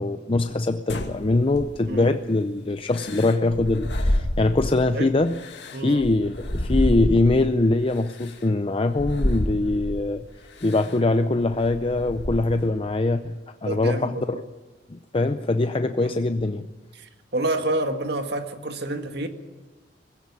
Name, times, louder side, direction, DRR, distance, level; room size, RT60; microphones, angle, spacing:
voice 1, 0.0-5.4 5.8-10.3 10.6-13.3 13.6-14.4 14.9-16.7, left 2 dB, 30° left, 9 dB, 0.6 m, -23 dB
sound 1, 0.9-2.1 2.9-4.9 5.3-7.5 8.2-8.3 8.9-10.1 10.6-10.9 11.4-12.7, left 1 dB, 75° left, 2.3 m, -28 dB
voice 2, 5.7-6.1 13.6-14.4 16.0-16.2 16.9-19.3, right 1 dB, 65° right, 6 dB, 1.9 m, -28 dB
20.5 x 16.0 x 9.7 m, 1.3 s
head